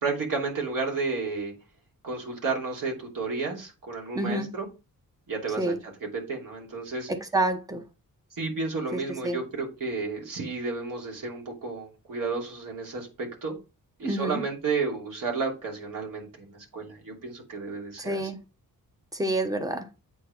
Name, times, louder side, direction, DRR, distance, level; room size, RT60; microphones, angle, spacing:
voice 1, 0.0-1.5 2.0-4.7 5.3-5.7 6.1-7.1 8.3-13.5 14.0-18.2, right 4 dB, 65° right, 2.9 m, -32 dB
voice 2, 4.1-4.5 5.6-5.8 7.1-7.8 8.9-9.4 14.0-14.4 18.0-18.4 19.1-19.9, right 1 dB, 10° right, 0.9 m, -28 dB
8.3 x 3.5 x 6.0 m
wide cardioid pair, 155°, 34 cm